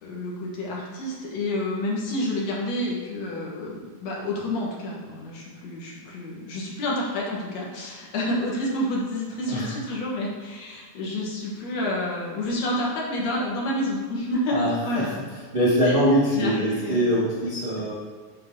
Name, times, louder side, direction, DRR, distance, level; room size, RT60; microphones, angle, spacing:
voice 1, 0.0-14.6 14.8-15.1 15.8-16.0 16.3-17.1, left 1 dB, 55° left, -3 dB, 2.3 m, -29 dB
voice 2, 14.5-15.2 15.5-17.9, equal, 80° right, -9 dB, 0.5 m, -23 dB
11.5 x 3.9 x 3.7 m, 1.5 s
omnidirectional pair, 4.1 m